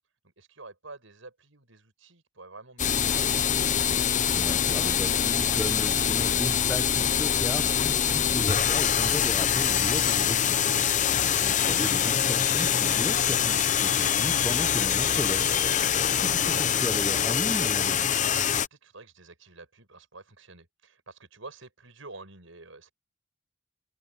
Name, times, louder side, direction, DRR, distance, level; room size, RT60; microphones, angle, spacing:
voice 1, 0.2-3.7 18.1-22.9, right 3 dB, 75° right, 6.6 m, -49 dB
sound 1, 2.8-18.7, left 8 dB, 40° left, 0.7 m, -24 dB
voice 2, 4.3-11.0 11.2-18.1, equal, 5° left, 0.8 m, -36 dB
head